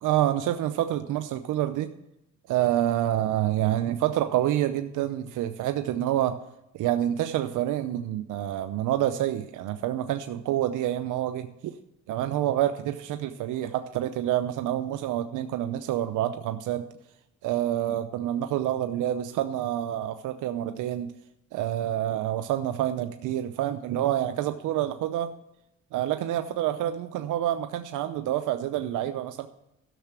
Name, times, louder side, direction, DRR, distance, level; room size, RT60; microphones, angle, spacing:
voice 1, 0.0-1.9 2.5-6.4 6.7-11.7 12.1-16.8 17.4-21.1 21.5-25.3 25.9-29.5, right 12 dB, 85° right, 9 dB, 0.6 m, -27 dB
12.0 x 6.7 x 6.0 m, 0.86 s
cardioid pair, 90°, 30 cm